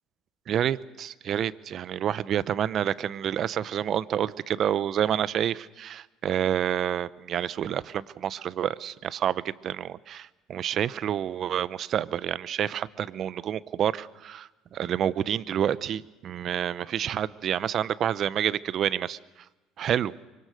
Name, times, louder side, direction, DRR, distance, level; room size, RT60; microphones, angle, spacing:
voice 1, 0.5-19.2 19.8-20.1, right 10 dB, 50° right, 17 dB, 0.8 m, -28 dB
25.0 x 24.5 x 6.5 m, 1.1 s
supercardioid pair, 80°, 0 cm